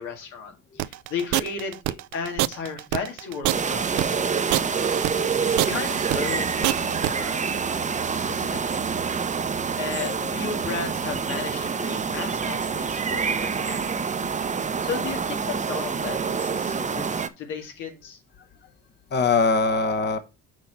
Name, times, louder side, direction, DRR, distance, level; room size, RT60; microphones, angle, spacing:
voice 1, 0.0-4.3 5.5-7.7 8.3-8.6 9.8-13.8 14.8-18.2, left 5 dB, 90° left, 2.1 m, -35 dB
sound 1, 0.8-7.1, right 18 dB, 75° right, 0.4 m, -25 dB
sound 2, 3.5-17.3, right 5 dB, 25° right, 0.7 m, -27 dB
voice 2, 10.0-10.6 19.1-20.2, left 4 dB, 35° left, 0.9 m, -23 dB
6.1 x 4.3 x 5.5 m
cardioid pair, 90°, 30 cm